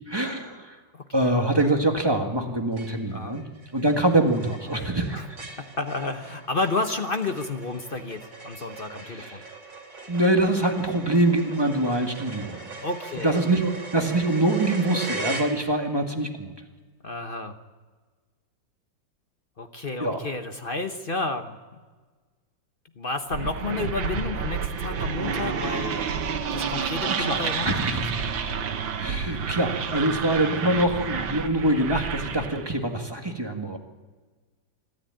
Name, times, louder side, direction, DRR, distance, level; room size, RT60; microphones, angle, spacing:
voice 1, 0.1-0.8 1.1-3.4 3.7-5.3 8.9-9.5 10.1-12.7 13.2-16.5 20.0-20.2 27.2-28.0 29.0-33.8, right 1 dB, 15° right, 3 dB, 1.6 m, -24 dB
sound 1, 1.6-2.0 2.4-2.5 2.8-16.0, right 3 dB, 70° right, 3.6 m, -40 dB
voice 2, 5.6-9.4 12.8-13.4 17.0-17.6 19.6-21.6 23.0-26.1 26.5-27.8, left 3 dB, 35° left, 7 dB, 1.0 m, -31 dB
sound 2, 23.3-32.7, right 6 dB, 85° right, 2.0 m, -29 dB
25.0 x 13.0 x 8.9 m, 1.4 s
omnidirectional pair, 2.0 m